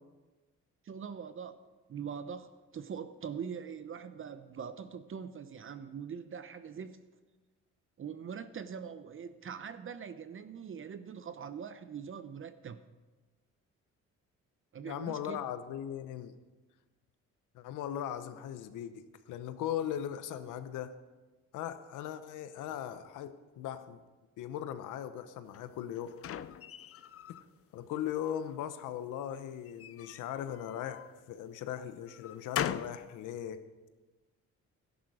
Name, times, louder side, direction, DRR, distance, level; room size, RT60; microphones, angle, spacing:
voice 1, 0.8-7.0 8.0-12.8 14.7-15.4, right 7 dB, 45° right, 11 dB, 0.8 m, -43 dB
voice 2, 14.8-16.3 17.5-20.9 21.5-24.0 24.4-26.1 27.3-27.4 27.7-31.0 31.3-33.6, left 10 dB, 90° left, 11 dB, 0.9 m, -39 dB
sound 1, 25.5-27.5 27.9-28.7 29.6-31.1 31.7-33.0, left 10 dB, 50° left, 0.5 m, -40 dB
13.0 x 11.0 x 4.9 m, 1.2 s
cardioid pair, 90°, 30 cm